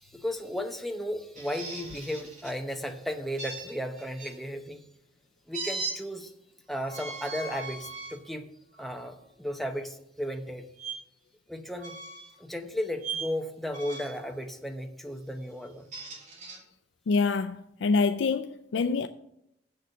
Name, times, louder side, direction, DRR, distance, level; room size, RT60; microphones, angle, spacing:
voice 1, 0.0-4.9 5.5-6.3 6.7-8.5 8.8-10.7 11.5-12.0 12.4-15.9, equal, ahead, 0.8 m, -35 dB
sound 1, 1.3-2.6 3.4-4.3 5.5-6.0 6.8-8.2 8.8-9.0 10.8-10.9 11.8-12.4 13.0-13.3 13.7-14.2 15.6-16.6, right 4 dB, 40° right, 2.9 m, -38 dB
voice 2, 17.1-19.1, left 4 dB, 85° left, 0.4 m, -26 dB
7.4 x 6.7 x 6.4 m
head